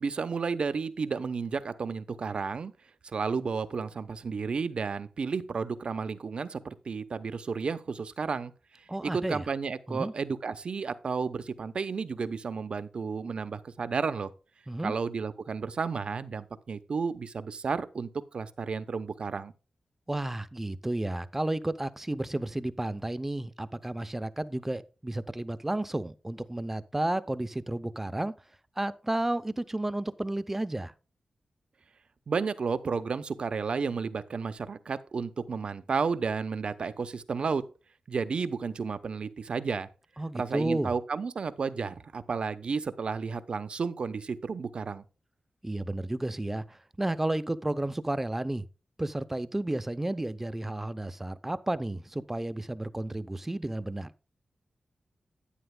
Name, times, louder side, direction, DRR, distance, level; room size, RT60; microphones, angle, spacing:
voice 1, 0.0-2.7 3.1-8.5 9.0-14.3 14.8-19.5 32.3-37.6 38.1-39.9 40.3-45.0, right 5 dB, 60° right, 0.8 m, -32 dB
voice 2, 8.9-9.4 9.9-10.1 14.7-14.9 20.1-28.3 28.8-30.9 40.2-40.9 45.6-48.7 49.0-54.1, right 1 dB, 15° right, 0.6 m, -32 dB
11.0 x 9.8 x 2.2 m
wide cardioid pair, 130°, 2 cm